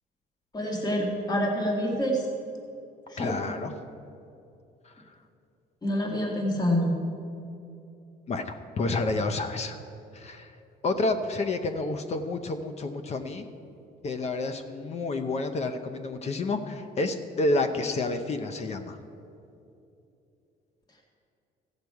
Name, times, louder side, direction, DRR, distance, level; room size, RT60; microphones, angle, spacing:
voice 1, 0.5-2.3 3.1-3.4 5.8-6.9, equal, 25° left, 0 dB, 1.8 m, -27 dB
voice 2, 3.2-3.7 8.3-9.8 10.1-10.5 10.8-13.4 14.0-19.0, left 2 dB, 40° left, 8 dB, 0.7 m, -29 dB
15.0 x 6.6 x 4.7 m, 2.7 s
cardioid pair, 110°, 17 cm